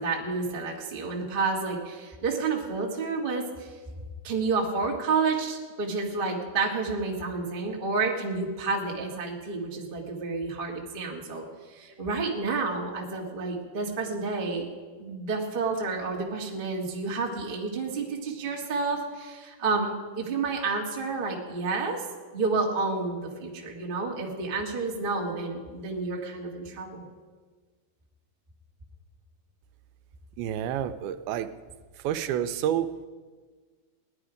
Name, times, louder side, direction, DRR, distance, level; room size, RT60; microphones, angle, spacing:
voice 1, 0.0-3.7 4.2-11.4 11.7-14.7 15.0-22.0 22.3-27.1, right 4 dB, 60° right, -2 dB, 0.5 m, -30 dB
voice 2, 30.4-31.5 32.0-32.9, right 10 dB, 90° right, 10 dB, 2.5 m, -28 dB
18.0 x 11.0 x 5.0 m, 1.5 s
omnidirectional pair, 4.3 m